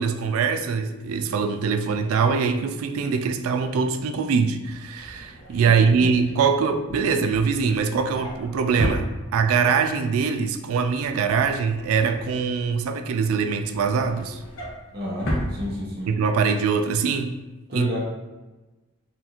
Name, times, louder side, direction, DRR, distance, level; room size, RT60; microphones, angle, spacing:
voice 1, 0.0-14.4 16.1-17.3 17.7-18.0, right 5 dB, 75° right, 7 dB, 0.3 m, -23 dB
Drawer open or close, 4.7-9.7 10.1-10.4 10.7-12.9 13.3-16.3 16.7-16.9 17.1-17.2, equal, 65° left, 0.9 m, -34 dB
voice 2, 5.7-6.1 14.9-16.1 17.7-18.0, equal, 45° right, -4 dB, 0.7 m, -31 dB
4.1 x 2.5 x 2.8 m, 1.1 s
head